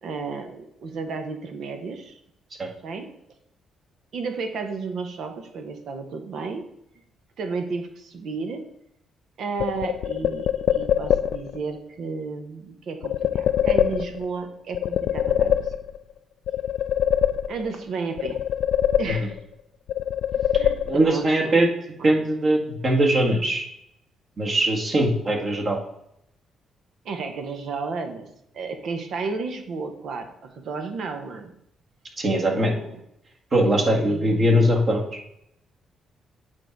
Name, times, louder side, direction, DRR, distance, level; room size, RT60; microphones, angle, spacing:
voice 1, 0.0-2.2 2.8-3.1 4.1-6.7 7.4-8.7 9.4-15.7 17.5-18.4 19.0-19.4 20.6-21.6 22.0-22.3 27.0-28.3 28.5-31.5 32.5-33.0 33.7-34.7, right 4 dB, 70° right, 6 dB, 1.1 m, -33 dB
sound 1, 9.6-11.6 13.0-14.4 14.7-16.1 16.5-17.8 18.2-19.5 19.9-21.3, left 9 dB, 80° left, 0.3 m, -24 dB
voice 2, 20.9-21.7 22.0-23.7 24.4-25.8 32.2-32.7 33.5-35.0, right 1 dB, 45° right, 0 dB, 1.9 m, -21 dB
8.9 x 3.9 x 4.6 m, 0.77 s
cardioid pair, 90°, 0 cm